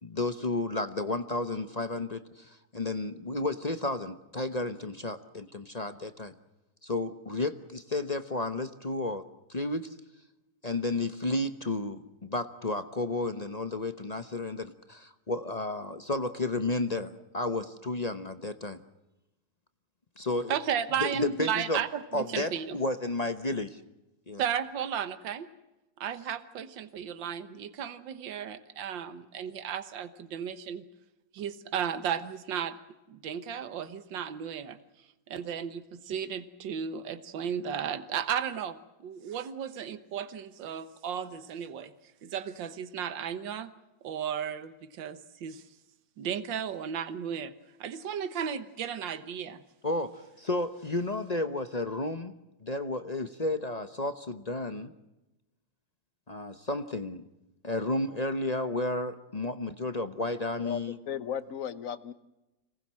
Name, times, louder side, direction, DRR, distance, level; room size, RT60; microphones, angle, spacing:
voice 1, 0.0-6.3 6.8-9.2 9.5-9.9 10.6-18.8 20.2-20.5 21.0-21.8 22.1-23.8 24.3-24.4 49.8-52.3 52.6-54.9 56.3-57.2 57.6-61.0, left 2 dB, 30° left, 9 dB, 0.8 m, -32 dB
voice 2, 20.5-22.8 24.4-25.5 26.0-30.8 31.3-32.8 33.1-34.8 35.3-41.9 42.2-43.7 44.0-45.6 46.2-47.5 47.8-49.6, right 8 dB, 80° right, 10 dB, 1.9 m, -34 dB
voice 3, 60.6-62.1, left 8 dB, 50° left, 14 dB, 1.2 m, -35 dB
26.0 x 19.0 x 7.6 m, 0.99 s
omnidirectional pair, 2.0 m